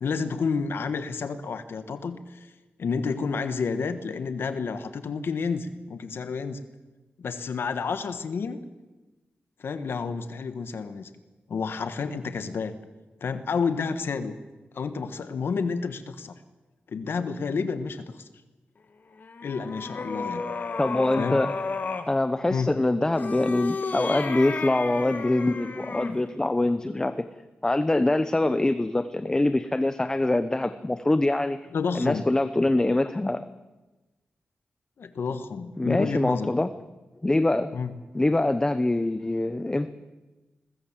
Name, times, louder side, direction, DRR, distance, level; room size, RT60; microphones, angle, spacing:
voice 1, 0.0-2.5 2.8-6.6 7.2-8.6 9.6-11.1 11.5-12.7 13.2-14.4 14.7-16.3 16.9-18.2 19.4-20.4 21.2-21.4 22.5-22.8 31.7-32.3 35.0-36.5 37.7-37.9, left 5 dB, 75° left, 10 dB, 1.4 m, -30 dB
sound 1, 19.1-22.1 23.1-26.2, left 4 dB, 50° left, 2.1 m, -33 dB
voice 2, 20.8-21.5 22.1-27.1 27.6-31.6 31.9-33.4 35.8-36.7 37.2-37.8 38.1-39.9, left 2 dB, 15° left, 11 dB, 0.8 m, -24 dB
22.0 x 21.0 x 7.5 m, 1.1 s
wide cardioid pair, 120°, 4 cm